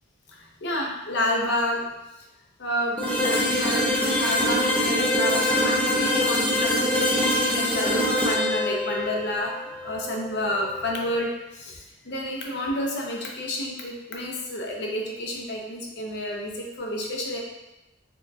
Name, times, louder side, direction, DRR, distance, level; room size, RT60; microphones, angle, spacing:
voice 1, 0.3-1.9 2.6-9.6 9.8-17.4, left 1 dB, 60° left, -1 dB, 0.7 m, -30 dB
sound 1, 3.0-10.8, left 1 dB, 10° left, 0.4 m, -24 dB
4.2 x 2.3 x 2.7 m, 0.98 s
head